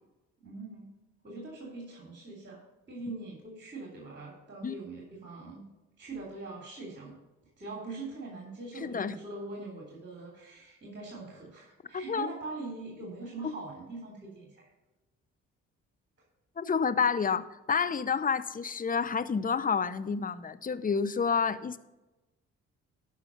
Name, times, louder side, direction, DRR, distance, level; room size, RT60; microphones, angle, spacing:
voice 1, 0.4-0.9 1.2-2.6 2.9-5.6 6.0-7.2 7.6-14.7, right 3 dB, 30° right, -2 dB, 2.9 m, -42 dB
voice 2, 8.8-9.2 11.9-12.3 13.4-13.5 16.6-21.8, left 6 dB, 25° left, 15 dB, 0.7 m, -29 dB
12.0 x 5.6 x 5.1 m, 1.1 s
hypercardioid pair, 45°, 36 cm